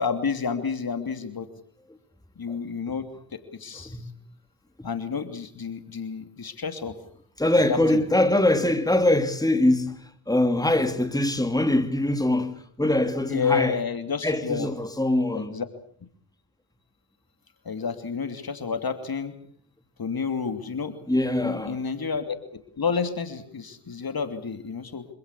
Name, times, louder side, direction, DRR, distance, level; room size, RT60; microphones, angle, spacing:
voice 1, 0.0-1.5 2.4-4.0 4.8-7.0 7.7-8.0 13.3-14.7 15.3-15.7 17.6-19.3 20.0-21.0 21.4-25.1, left 5 dB, 45° left, 3.1 m, -30 dB
voice 2, 7.4-13.8 14.2-15.5 21.1-21.8, left 1 dB, 5° left, 2.8 m, -23 dB
26.0 x 16.5 x 8.5 m
supercardioid pair, 45°, 49 cm